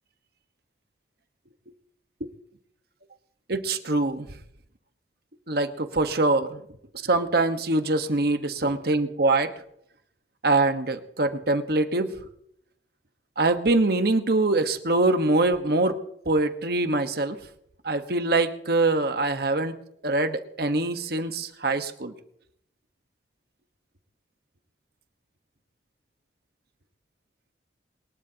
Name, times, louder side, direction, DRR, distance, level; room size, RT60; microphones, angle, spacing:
voice 1, 3.5-4.3 5.5-6.6 7.0-9.5 10.4-12.2 13.4-16.0 16.2-17.4 17.8-19.7 20.0-22.1, right 2 dB, 55° right, 8 dB, 1.3 m, -24 dB
23.0 x 20.5 x 2.9 m, 0.72 s
head